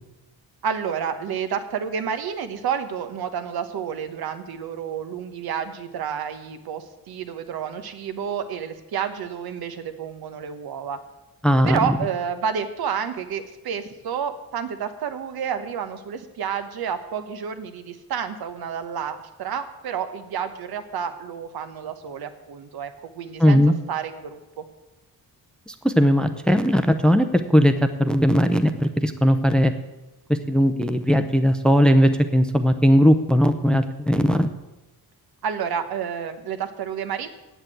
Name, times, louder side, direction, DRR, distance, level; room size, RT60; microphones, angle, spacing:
voice 1, 0.6-11.0 11.6-23.6 23.9-24.6 35.4-37.3, right 7 dB, 75° right, 9 dB, 1.1 m, -30 dB
voice 2, 11.4-11.9 23.4-23.7 25.7-27.7 28.0-29.7 30.3-34.5, equal, ahead, 8 dB, 0.5 m, -18 dB
8.1 x 8.1 x 9.0 m, 1.0 s
wide cardioid pair, 160°, 37 cm